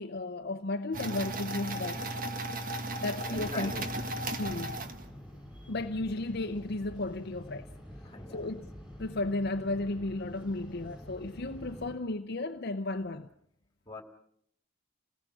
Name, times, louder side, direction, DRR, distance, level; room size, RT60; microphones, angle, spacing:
voice 1, 0.0-2.1 3.0-3.7 4.4-4.8 5.7-7.7 8.3-8.7 9.0-13.3, left 2 dB, 55° left, 0.8 m, -34 dB
sound 1, 0.9-5.4, right 1 dB, 45° right, 1.5 m, -36 dB
voice 2, 3.1-4.6 5.1-5.4 8.0-8.5 13.9-14.0, left 2 dB, 20° left, 2.6 m, -44 dB
sound 2, 3.3-11.9, equal, 5° right, 6.0 m, -47 dB
28.5 x 18.5 x 6.2 m
head